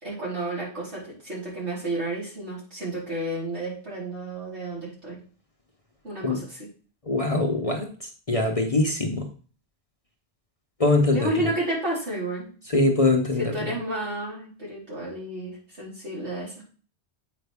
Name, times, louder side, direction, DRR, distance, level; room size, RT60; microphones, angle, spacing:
voice 1, 0.0-5.2 6.0-6.7 11.1-12.5 13.4-16.6, right 1 dB, 75° right, -6 dB, 4.3 m, -31 dB
voice 2, 7.1-7.9 8.3-9.3 10.8-11.3 12.7-13.4, left 2 dB, 35° left, 2 dB, 0.9 m, -22 dB
8.2 x 5.1 x 3.4 m, 0.40 s
omnidirectional pair, 1.2 m